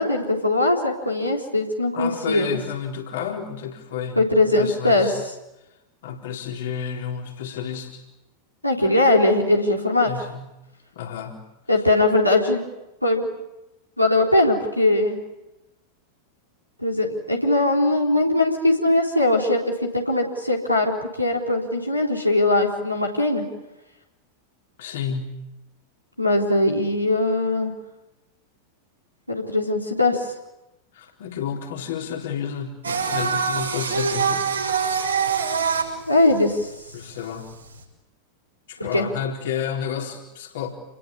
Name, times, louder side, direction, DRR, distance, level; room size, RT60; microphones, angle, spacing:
voice 1, 0.0-2.6 4.2-5.1 8.6-10.1 11.7-12.6 13.0-13.3 14.0-15.2 16.8-20.9 21.2-23.5 26.2-27.7 29.3-30.3 36.1-36.7 38.9-39.1, left 2 dB, 90° left, -1 dB, 4.0 m, -20 dB
voice 2, 1.9-5.3 6.0-8.0 10.1-10.5 10.9-11.4 24.8-25.4 30.9-34.9 36.9-37.5 38.7-40.7, left 8 dB, 55° left, 2 dB, 4.0 m, -31 dB
Singing, 32.8-37.8, right 6 dB, 75° right, 6.5 m, -25 dB
29.0 x 21.5 x 8.7 m, 0.95 s
figure-of-eight pair, 90°, 0 cm